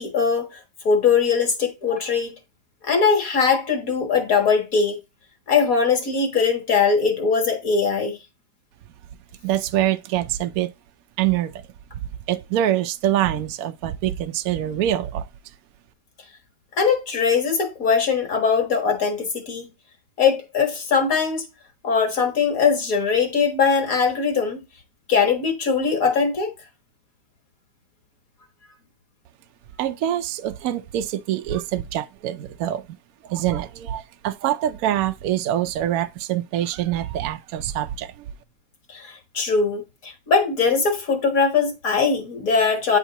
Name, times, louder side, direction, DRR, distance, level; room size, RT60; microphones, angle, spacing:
voice 1, 0.0-2.3 2.8-5.0 5.5-8.2 16.8-19.7 20.2-21.4 21.8-24.6 25.1-26.5 38.9-43.0, left 5 dB, 55° left, 1.8 m, -21 dB
voice 2, 9.4-10.7 11.2-11.6 12.3-15.3 29.8-32.8 33.2-38.3, right 12 dB, 70° right, 0.9 m, -25 dB
9.0 x 3.7 x 2.8 m
omnidirectional pair, 1.9 m